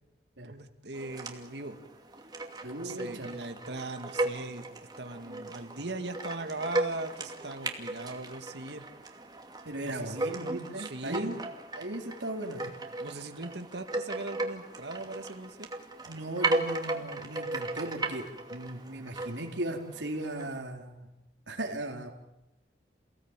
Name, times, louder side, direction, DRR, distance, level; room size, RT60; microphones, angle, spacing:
voice 1, 0.4-1.8 2.8-4.6 5.0-8.9 9.8-10.4 10.8-11.4 13.0-15.7, right 2 dB, 70° right, 7 dB, 2.2 m, -39 dB
sound 1, 0.9-20.6, right 2 dB, 20° right, 2.5 m, -36 dB
voice 2, 2.6-3.3 9.7-11.4 11.8-12.7 16.1-18.2 18.5-21.1 21.5-22.1, right 1 dB, 85° right, 2 dB, 4.1 m, -37 dB
29.0 x 18.0 x 9.1 m, 0.89 s
head